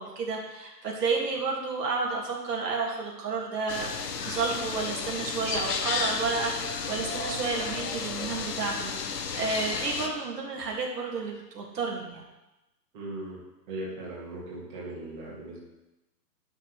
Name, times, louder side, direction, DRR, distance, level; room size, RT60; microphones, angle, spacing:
voice 1, 0.0-3.9 4.2-12.2, right 4 dB, 70° right, -2 dB, 2.2 m, -31 dB
sound 1, 3.7-10.1, left 5 dB, 70° left, 1.1 m, -33 dB
voice 2, 12.9-13.4 13.7-15.6, right 1 dB, 30° right, -5 dB, 2.1 m, -38 dB
11.0 x 6.3 x 3.2 m, 0.98 s
hypercardioid pair, 170°, 50 cm